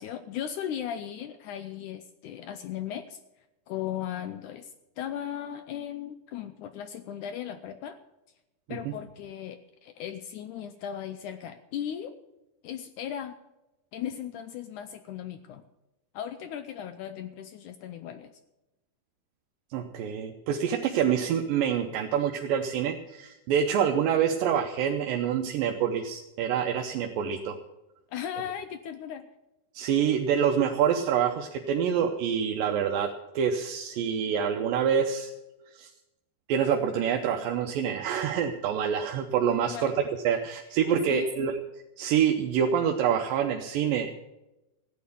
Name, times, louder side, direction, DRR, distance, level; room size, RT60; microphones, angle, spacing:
voice 1, 0.0-3.2 3.7-8.0 8.7-12.2 12.6-13.4 13.9-15.6 16.1-18.4 28.1-29.3 39.6-39.9 41.1-41.4, left 10 dB, 75° left, 9 dB, 1.9 m, -37 dB
voice 2, 19.7-27.6 29.7-33.1 33.4-35.3 35.7-35.9 36.5-41.6 42.0-44.1, right 8 dB, 80° right, 3 dB, 2.5 m, -26 dB
15.0 x 9.4 x 6.9 m, 0.98 s
omnidirectional pair, 4.0 m